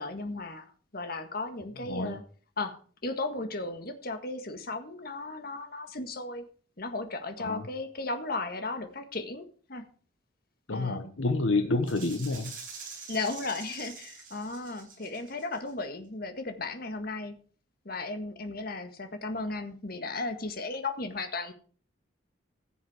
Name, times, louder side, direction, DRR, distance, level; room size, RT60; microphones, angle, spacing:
voice 1, 0.0-2.2 2.6-2.8 3.0-6.4 6.8-9.8 10.7-11.0 13.1-17.3 17.8-21.5, left 3 dB, 50° left, 7 dB, 1.7 m, -35 dB
voice 2, 1.9-2.2 7.4-7.6 10.7-12.5, left 2 dB, 80° left, 7 dB, 1.1 m, -28 dB
Rattle (instrument), 11.9-15.7, right 5 dB, 45° right, 6.8 m, -45 dB
15.5 x 7.2 x 4.9 m, 0.42 s
head